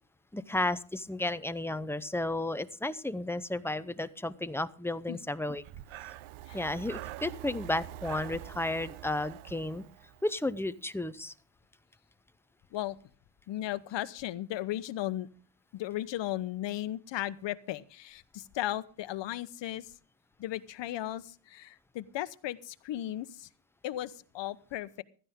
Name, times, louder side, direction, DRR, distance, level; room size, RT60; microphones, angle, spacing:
voice 1, 0.3-5.6 6.5-9.8 10.2-11.3, left 2 dB, 5° left, 12 dB, 0.6 m, -33 dB
Breathing, 5.5-10.5, right 14 dB, 75° right, 0.8 m, -45 dB
voice 2, 13.5-15.3 15.7-19.9 20.4-23.5 23.8-25.0, left 13 dB, 60° left, 13 dB, 1.0 m, -36 dB
16.0 x 13.0 x 3.7 m, 0.40 s
cardioid pair, 135°, 49 cm